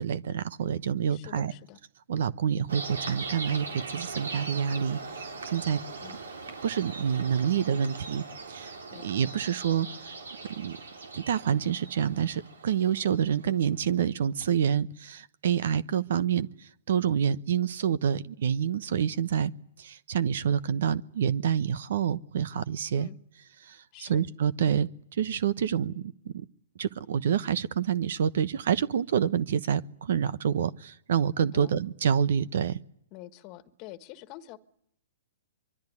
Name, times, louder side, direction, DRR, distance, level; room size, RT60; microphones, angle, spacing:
voice 1, 0.0-1.5 2.1-5.8 6.6-8.8 9.0-10.1 10.5-10.8 11.1-19.5 19.8-23.1 23.6-26.4 26.8-32.8, right 8 dB, 65° right, 1.0 m, -27 dB
voice 2, 1.1-1.8 6.0-6.2 8.9-9.1 23.0-23.2 23.9-24.2 31.5-31.7 33.1-34.6, left 15 dB, 35° left, 1.6 m, -46 dB
sound 1, 2.7-13.6, right 3 dB, 85° right, 3.7 m, -40 dB
24.0 x 23.5 x 9.8 m
hypercardioid pair, 130°, 0 cm